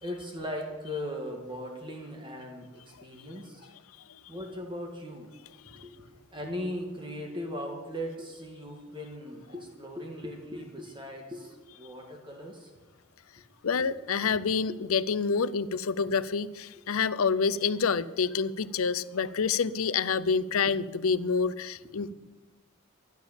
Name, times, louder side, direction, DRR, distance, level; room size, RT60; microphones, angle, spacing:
voice 1, 0.0-3.7 4.3-5.3 5.6-5.9 6.3-12.7 13.8-13.9 14.7-14.8, equal, 25° right, 2 dB, 1.6 m, -38 dB
voice 2, 13.6-22.1, left 5 dB, 80° left, 17 dB, 0.6 m, -28 dB
12.5 x 11.0 x 7.1 m, 1.2 s
head